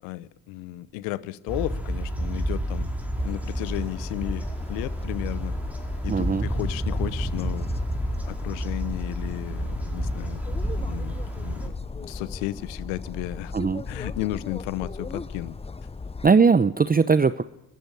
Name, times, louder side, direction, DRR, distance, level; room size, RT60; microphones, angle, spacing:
voice 1, 0.0-2.9 3.2-5.5 6.0-7.7 8.3-11.7 12.0-13.5 13.9-15.5, left 17 dB, 80° left, 20 dB, 0.9 m, -34 dB
sound 1, 1.5-11.7, right 1 dB, 5° right, 4.7 m, -30 dB
sound 2, 3.2-16.3, left 4 dB, 15° left, 0.7 m, -37 dB
voice 2, 6.1-6.5 13.5-13.8 16.2-17.4, right 5 dB, 20° right, 14 dB, 0.8 m, -19 dB
22.5 x 13.5 x 9.7 m, 0.90 s
hypercardioid pair, 50°, 43 cm